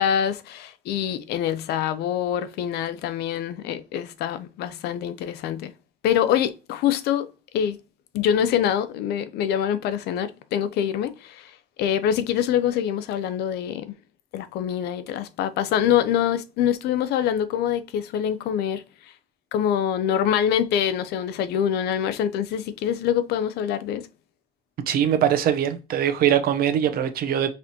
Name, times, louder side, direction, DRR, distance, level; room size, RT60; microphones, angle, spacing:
voice 1, 0.0-5.7 6.0-7.3 7.5-7.8 8.1-11.5 11.8-14.0 14.3-18.8 19.5-24.1, left 9 dB, 75° left, 0.5 m, -25 dB
voice 2, 24.9-27.5, right 10 dB, 60° right, 0.6 m, -22 dB
4.1 x 3.0 x 2.7 m
cardioid pair, 110°, 17 cm